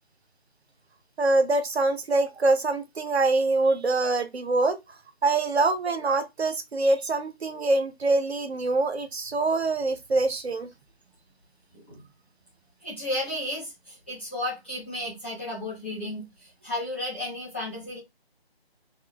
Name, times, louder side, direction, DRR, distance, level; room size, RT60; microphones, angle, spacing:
voice 1, 1.2-4.8 5.2-10.7, right 2 dB, 85° right, 0.6 m, -24 dB
voice 2, 11.7-12.1 12.8-18.0, left 1 dB, 10° left, 0.8 m, -33 dB
3.0 x 2.1 x 2.2 m
figure-of-eight pair, 160°, 31 cm